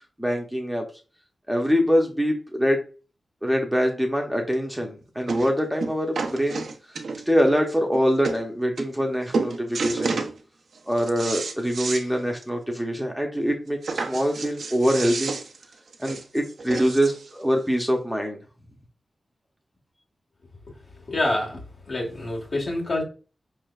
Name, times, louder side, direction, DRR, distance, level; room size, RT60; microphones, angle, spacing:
voice 1, 0.2-0.9 1.5-2.8 3.4-6.7 7.3-10.2 10.9-15.4 16.0-18.4, equal, ahead, 0.7 m, -24 dB
sound 1, 4.5-4.6 5.3-5.5 5.8-7.4 7.9-8.4 8.8-9.1 9.3-10.3 10.8-12.1 12.4-12.5 12.8-12.9 13.8-17.3 18.1-18.2, right 4 dB, 80° right, 0.5 m, -30 dB
voice 2, 21.1-21.6 21.9-23.0, left 2 dB, 60° left, 1.5 m, -26 dB
5.0 x 3.3 x 2.3 m
wide cardioid pair, 100°, 0 cm